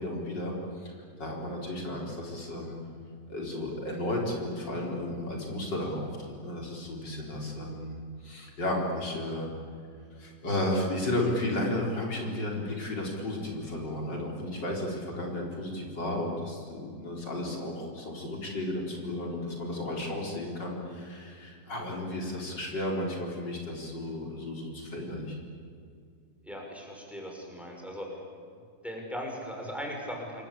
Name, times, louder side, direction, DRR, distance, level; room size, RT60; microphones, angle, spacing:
voice 1, 0.0-2.8 3.3-9.5 10.1-25.4, left 1 dB, 75° left, -1 dB, 4.8 m, -33 dB
voice 2, 26.4-28.1 28.8-30.4, equal, ahead, 0 dB, 5.9 m, -38 dB
27.5 x 22.5 x 8.6 m, 2.3 s
omnidirectional pair, 1.9 m